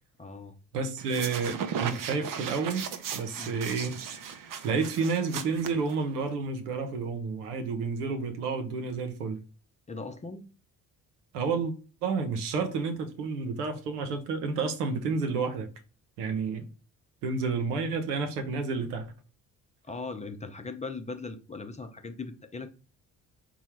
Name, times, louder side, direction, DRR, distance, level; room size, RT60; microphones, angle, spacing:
voice 1, 0.2-0.5 3.4-3.6 9.9-10.4 19.8-22.7, left 3 dB, 15° left, 0.5 m, -39 dB
voice 2, 0.7-2.9 3.1-3.9 4.6-9.4 11.3-11.7 12.0-15.7 16.2-16.7 17.2-19.1, right 4 dB, 90° right, 0.6 m, -30 dB
sound 1, 1.0-6.3, right 7 dB, 45° right, 0.6 m, -37 dB
4.4 x 2.0 x 4.3 m
hypercardioid pair, 50°, 45 cm